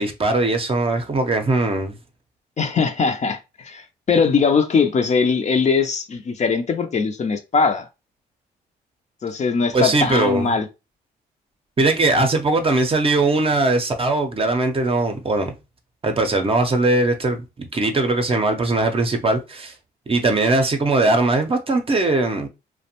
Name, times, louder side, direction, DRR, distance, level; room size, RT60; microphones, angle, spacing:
voice 1, 0.0-2.0 9.7-10.6 11.8-15.5 16.0-19.7 20.1-22.5, right 2 dB, 30° right, 0.6 m, -20 dB
voice 2, 2.6-7.9 9.2-10.7, left 5 dB, 40° left, 0.5 m, -20 dB
2.4 x 2.1 x 2.8 m
supercardioid pair, 60°, 18 cm